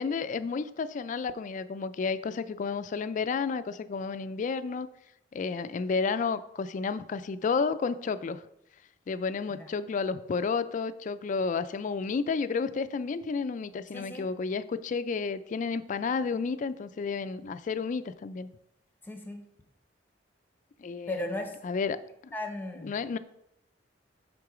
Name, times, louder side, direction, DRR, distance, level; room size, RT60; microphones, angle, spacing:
voice 1, 0.0-4.9 5.3-8.4 9.1-18.5 20.8-22.0 22.2-22.3 22.8-23.2, left 5 dB, 45° left, 13 dB, 0.3 m, -31 dB
voice 2, 13.9-14.3 19.0-19.4 21.1-21.5 22.3-23.2, left 1 dB, 10° left, 4 dB, 0.8 m, -36 dB
7.8 x 3.7 x 4.9 m, 0.83 s
head